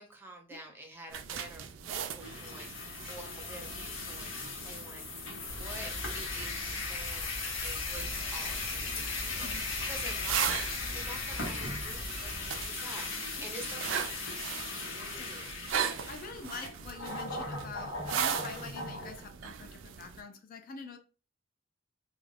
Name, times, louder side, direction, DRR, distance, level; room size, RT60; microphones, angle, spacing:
voice 1, 0.0-2.7 3.1-4.3 4.6-5.1 5.5-7.3 7.6-9.5 9.9-14.2 14.8-15.5, right 1 dB, 10° right, 2 dB, 0.6 m, -48 dB
sound 1, 1.1-5.9 8.0-20.2, right 8 dB, 75° right, 0.3 m, -39 dB
sound 2, 2.2-19.2, left 3 dB, 90° left, 0.9 m, -38 dB
sound 3, 5.5-12.7, equal, 65° left, 1.1 m, -44 dB
voice 2, 14.9-15.3 16.1-21.0, left 4 dB, 45° left, 5 dB, 0.4 m, -45 dB
2.4 x 2.1 x 3.2 m, 0.35 s
head